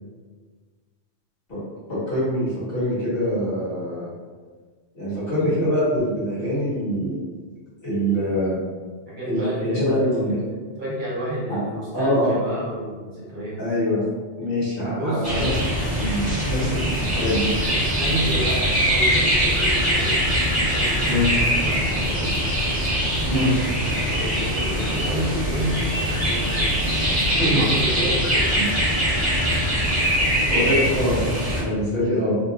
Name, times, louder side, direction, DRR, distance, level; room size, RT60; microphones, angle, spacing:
voice 1, 1.9-4.1 4.9-7.2 7.8-8.6 9.2-10.4 11.5-11.6 11.9-12.3 13.6-14.0 14.4-15.5 15.9-17.5 21.0-21.4 23.2-23.5 27.4-27.6 28.5-28.6 30.5-31.2 31.5-32.4, equal, 55° left, -11 dB, 1.6 m, -24 dB
voice 2, 9.1-13.6 14.9-15.4 17.6-20.3 20.7-22.4 23.8-27.0 27.5-28.7, right 1 dB, 45° right, -8 dB, 1.1 m, -31 dB
sound 1, 15.2-31.6, equal, 25° right, 0.7 m, -22 dB
3.0 x 2.7 x 2.3 m, 1.5 s
omnidirectional pair, 1.2 m